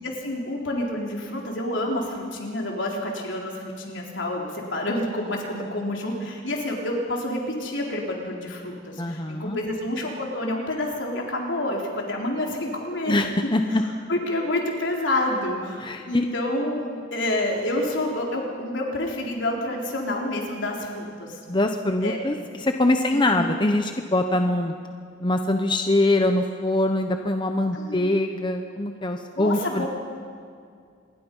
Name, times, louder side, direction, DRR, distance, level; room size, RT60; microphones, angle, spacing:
voice 1, 0.0-13.1 13.7-13.8 14.1-21.4 22.0-22.2 23.1-23.5 27.7-28.2 29.4-29.9, left 1 dB, 75° left, 0 dB, 4.0 m, -28 dB
voice 2, 9.0-9.6 13.1-13.8 15.8-16.3 16.9-17.0 21.5-24.7 25.2-29.9, left 1 dB, 25° left, 5 dB, 0.9 m, -23 dB
26.5 x 21.0 x 5.5 m, 2.2 s
head